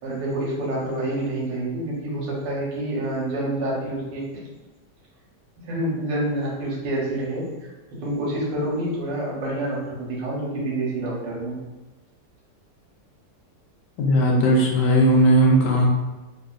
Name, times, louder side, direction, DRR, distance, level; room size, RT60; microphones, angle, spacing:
voice 1, 0.0-4.3 5.6-7.5 8.0-11.6, right 1 dB, 85° right, -4 dB, 1.6 m, -27 dB
voice 2, 14.0-15.9, right 1 dB, 80° left, -2 dB, 1.3 m, -17 dB
3.6 x 2.5 x 2.4 m, 1.1 s
omnidirectional pair, 1.9 m